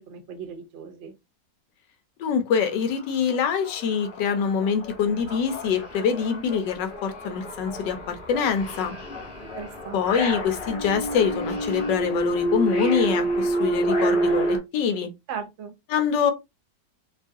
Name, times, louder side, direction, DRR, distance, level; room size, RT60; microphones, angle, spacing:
voice 1, 0.1-1.1 9.6-10.1 15.3-15.7, right 6 dB, 60° right, 0.8 m, -37 dB
voice 2, 2.2-8.9 9.9-15.1 15.9-16.3, left 6 dB, 90° left, 1.3 m, -25 dB
sound 1, 2.7-2.8 3.1-14.6, right 1 dB, 45° left, 0.7 m, -29 dB
3.1 x 2.3 x 2.6 m
omnidirectional pair, 1.9 m